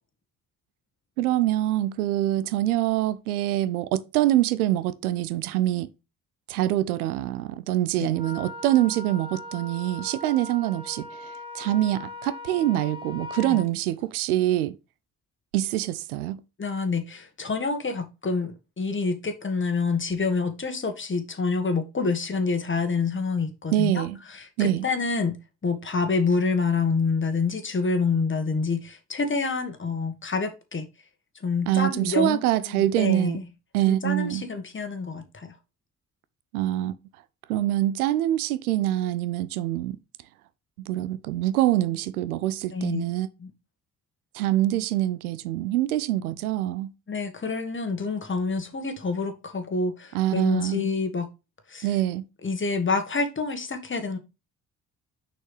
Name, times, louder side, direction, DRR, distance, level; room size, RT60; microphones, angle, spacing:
voice 1, 1.2-5.9 6.5-14.8 15.5-16.4 23.7-24.2 24.6-24.9 31.7-33.4 33.7-34.4 36.5-36.9 37.5-40.0 40.9-43.3 44.3-46.9 50.1-50.9 51.8-52.2, right 14 dB, 80° right, 0.5 m, -25 dB
Wind instrument woodwind instrument, 8.1-13.7, left 2 dB, 10° right, 1.6 m, -39 dB
voice 2, 16.6-24.0 24.3-25.3 25.6-30.9 31.4-33.4 33.9-35.6 42.7-43.0 43.4-43.5 47.1-51.3 51.7-51.9 52.4-54.2, left 4 dB, 25° left, 1.6 m, -27 dB
6.3 x 5.7 x 3.2 m
figure-of-eight pair, 45°, 43 cm